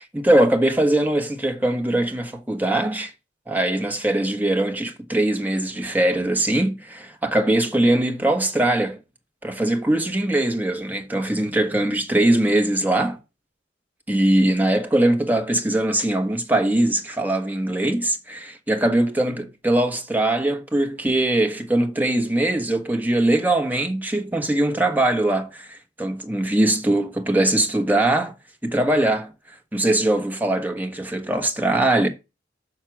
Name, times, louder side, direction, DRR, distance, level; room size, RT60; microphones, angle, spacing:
voice 1, 0.1-3.1 3.5-9.0 9.4-13.2 14.1-28.3 28.6-32.1, right 1 dB, 10° right, 1.3 m, -21 dB
6.4 x 6.1 x 6.1 m
head